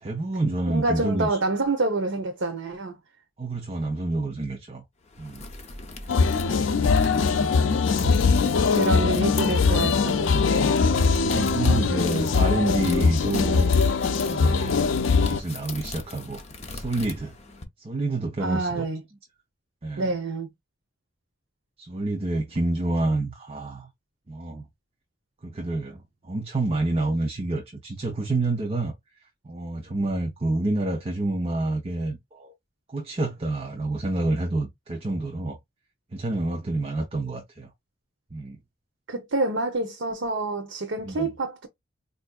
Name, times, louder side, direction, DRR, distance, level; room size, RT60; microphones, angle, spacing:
voice 1, 0.0-1.4 3.4-4.8 5.2-5.5 6.9-8.2 9.3-10.0 11.2-13.7 14.3-15.0 15.2-16.4 16.7-17.3 17.8-18.8 19.8-20.1 21.8-23.9 24.3-24.6 25.4-28.9 29.4-32.5 32.9-35.6 36.1-37.7 38.3-38.6 41.1-41.3, right 2 dB, 30° right, 0.6 m, -28 dB
voice 2, 0.7-3.0 7.3-7.5 8.7-10.7 18.4-19.0 20.0-20.5 39.1-41.7, right 2 dB, 75° right, 0.7 m, -27 dB
sound 1, 5.0-17.6, left 3 dB, 35° left, 0.8 m, -40 dB
sound 2, 6.1-15.4, left 4 dB, 80° left, 0.4 m, -21 dB
4.4 x 2.5 x 2.3 m
head